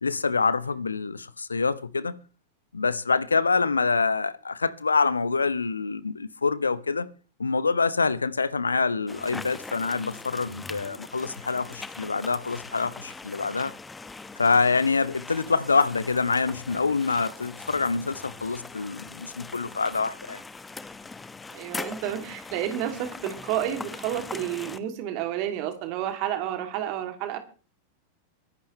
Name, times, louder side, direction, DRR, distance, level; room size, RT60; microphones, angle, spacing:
voice 1, 0.0-2.2 2.7-7.1 7.4-13.7 14.4-20.4, left 4 dB, 75° left, 0.8 m, -26 dB
sound 1, 9.1-24.8, left 3 dB, 10° left, 1.1 m, -41 dB
voice 2, 21.5-27.4, right 11 dB, 45° right, 2.8 m, -30 dB
22.5 x 11.5 x 3.3 m
figure-of-eight pair, 90°, 0 cm